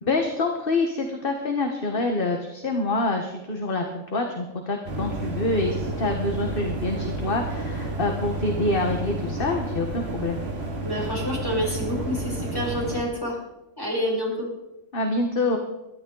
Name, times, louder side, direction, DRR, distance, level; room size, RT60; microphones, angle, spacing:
voice 1, 0.0-10.4 14.9-15.6, left 2 dB, 40° left, 3 dB, 1.6 m, -26 dB
sound 1, 4.8-13.0, right 2 dB, 50° right, 2.6 m, -30 dB
voice 2, 10.8-13.4 13.8-14.5, equal, 15° left, -3 dB, 5.7 m, -28 dB
22.5 x 12.5 x 3.9 m, 0.94 s
omnidirectional pair, 1.4 m